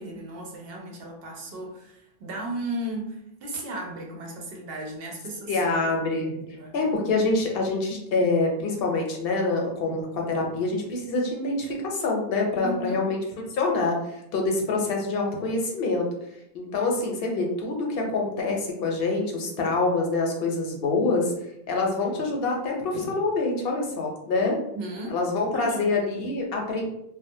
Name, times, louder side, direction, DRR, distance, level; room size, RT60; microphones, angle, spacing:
voice 1, 0.0-5.9 6.2-6.7 12.6-13.0 24.5-25.2 25.5-26.4, right 1 dB, 70° right, -1 dB, 0.8 m, -36 dB
voice 2, 5.5-6.4 6.7-13.2 13.5-16.1 16.5-21.3 21.7-24.5 25.1-26.9, left 3 dB, 70° left, 0 dB, 0.8 m, -26 dB
2.4 x 2.0 x 2.6 m, 0.79 s
omnidirectional pair, 1.1 m